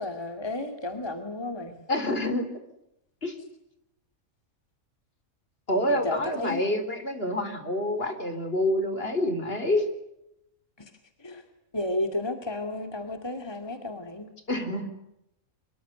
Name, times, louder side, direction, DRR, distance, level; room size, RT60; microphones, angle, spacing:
voice 1, 0.0-1.8 5.9-6.6 10.8-10.9 11.2-11.4 11.7-14.3, left 2 dB, 15° left, 6 dB, 2.5 m, -32 dB
voice 2, 1.9-2.5 3.2-3.4 5.7-9.9 14.5-14.9, left 1 dB, 40° left, 8 dB, 4.4 m, -27 dB
25.5 x 23.0 x 9.5 m, 0.84 s
omnidirectional pair, 1.5 m